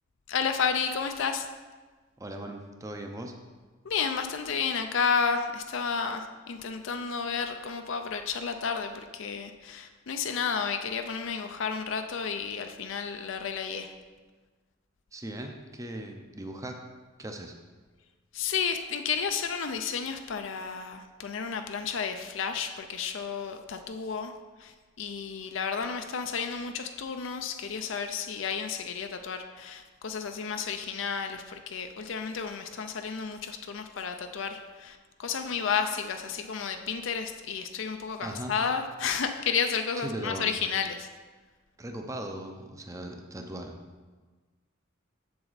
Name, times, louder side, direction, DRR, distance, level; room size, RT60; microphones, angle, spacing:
voice 1, 0.3-1.5 3.9-13.9 18.3-24.3 24.6-24.7 25.0-41.1, left 6 dB, 70° left, 6 dB, 0.5 m, -32 dB
voice 2, 2.2-3.3 15.1-16.8 17.2-17.5 38.2-38.6 40.0-40.6 41.8-43.8, right 1 dB, 15° right, 4 dB, 0.6 m, -38 dB
7.6 x 6.9 x 4.0 m, 1.4 s
head